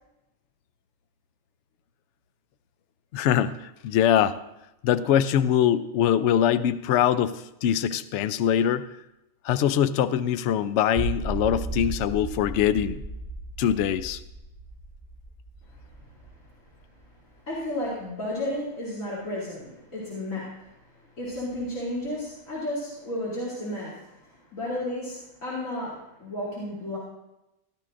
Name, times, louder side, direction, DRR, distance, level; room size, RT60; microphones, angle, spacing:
voice 1, 3.1-4.4 4.8-8.8 9.4-13.0 13.6-14.2, left 10 dB, 65° left, 12 dB, 0.8 m, -23 dB
sound 1, 11.0-17.0, right 3 dB, 15° right, 1.3 m, -35 dB
voice 2, 17.5-27.0, left 1 dB, 90° left, -9 dB, 3.4 m, -33 dB
16.0 x 12.0 x 2.5 m, 0.91 s
omnidirectional pair, 1.4 m